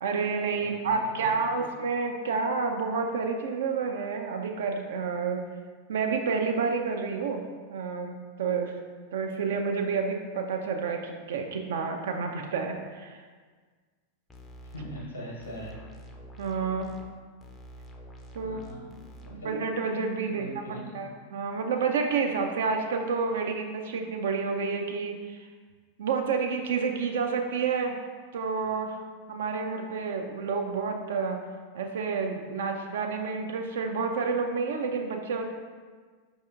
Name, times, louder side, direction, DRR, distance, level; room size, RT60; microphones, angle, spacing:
voice 1, 0.0-5.4 5.9-7.4 7.7-8.7 9.1-13.3 16.4-16.9 18.3-18.6 19.3-25.5 26.0-28.0 28.3-29.0 29.3-31.4 31.7-35.5, right 5 dB, 60° right, 4 dB, 0.3 m, -29 dB
voice 2, 0.5-1.3 1.5-1.7 14.7-15.7 18.4-18.9 19.2-19.5 20.2-21.0, equal, 75° left, -3 dB, 0.9 m, -41 dB
sound 1, 14.3-15.1 15.4-17.1 17.4-19.4, equal, 10° left, 0.4 m, -47 dB
4.7 x 2.7 x 2.3 m, 1.5 s
figure-of-eight pair, 90°, 0 cm